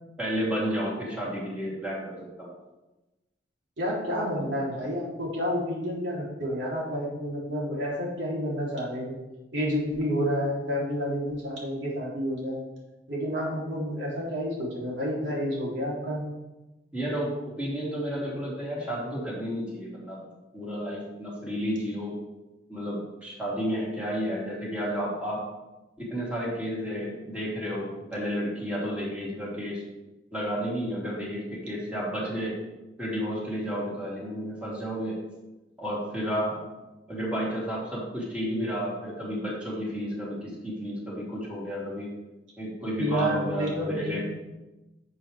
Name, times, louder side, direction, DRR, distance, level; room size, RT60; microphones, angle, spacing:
voice 1, 0.2-2.5 16.9-20.2 20.5-22.1 22.7-25.4 26.0-29.8 30.3-32.5 33.0-35.2 35.8-36.6 37.1-42.1 42.6-44.2, equal, 5° right, -7 dB, 3.3 m, -31 dB
voice 2, 3.8-9.1 9.5-12.6 13.1-16.2 43.0-44.2, equal, 85° right, -5 dB, 3.5 m, -29 dB
11.5 x 6.7 x 3.5 m, 1.0 s
head